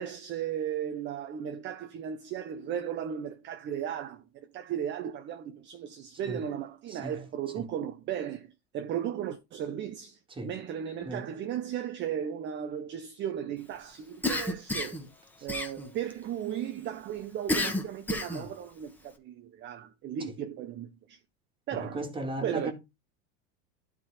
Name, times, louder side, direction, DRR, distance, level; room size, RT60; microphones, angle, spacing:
voice 1, 0.0-15.0 15.4-21.2 21.7-22.1 22.4-22.7, right 9 dB, 30° right, 0.7 m, -36 dB
Cough, 14.2-15.1 15.5-16.1 17.5-18.5, left 2 dB, 5° left, 1.3 m, -30 dB
voice 2, 21.9-22.7, right 2 dB, 15° right, 2.0 m, -35 dB
11.5 x 3.9 x 4.8 m
supercardioid pair, 135°, 37 cm